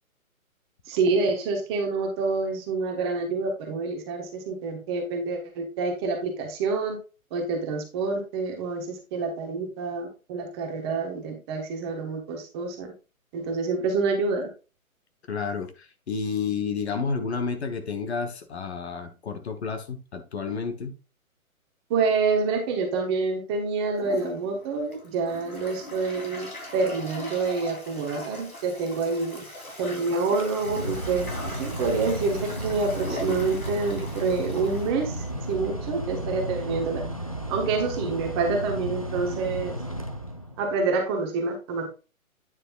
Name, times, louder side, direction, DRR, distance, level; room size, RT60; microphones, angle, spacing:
voice 1, 0.9-7.0 7.3-12.9 13.3-14.5 21.9-26.5 26.7-29.5 29.8-37.0 37.5-39.7 40.6-41.9, right 4 dB, 20° right, 2 dB, 1.2 m, -27 dB
voice 2, 15.3-20.9, left 5 dB, 50° left, 7 dB, 1.2 m, -30 dB
Toilet flush, 23.9-35.7, left 1 dB, 85° left, 3.4 m, -40 dB
Mechanical fan, 30.3-40.8, right 1 dB, 30° left, 0.3 m, -33 dB
9.3 x 6.5 x 2.4 m, 0.33 s
figure-of-eight pair, 140°, 43 cm